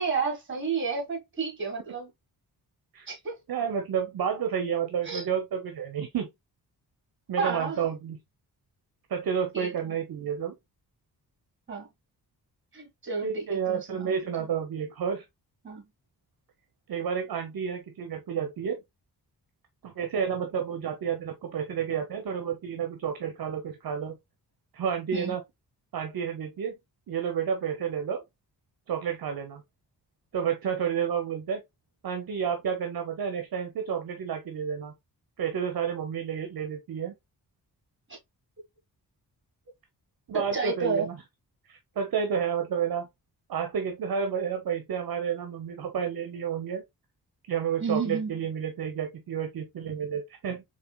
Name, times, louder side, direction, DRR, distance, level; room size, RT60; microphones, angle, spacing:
voice 1, 0.0-2.1 3.1-3.4 5.0-5.2 7.4-7.8 9.5-9.7 11.7-11.9 12.7-14.5 15.6-15.9 25.1-25.3 38.1-38.2 40.3-41.1 47.8-48.4, right 5 dB, 30° right, 1.6 m, -31 dB
voice 2, 3.5-6.3 7.3-8.2 9.1-10.5 13.2-15.2 16.9-18.8 19.8-24.2 24.7-25.4 25.9-26.7 27.1-28.2 28.9-29.6 30.3-31.6 32.0-34.9 35.4-37.1 40.3-41.2 41.7-43.1 43.5-46.8 47.5-50.6, right 7 dB, 65° right, 0.7 m, -30 dB
4.2 x 2.8 x 2.2 m
cardioid pair, 85°, 39 cm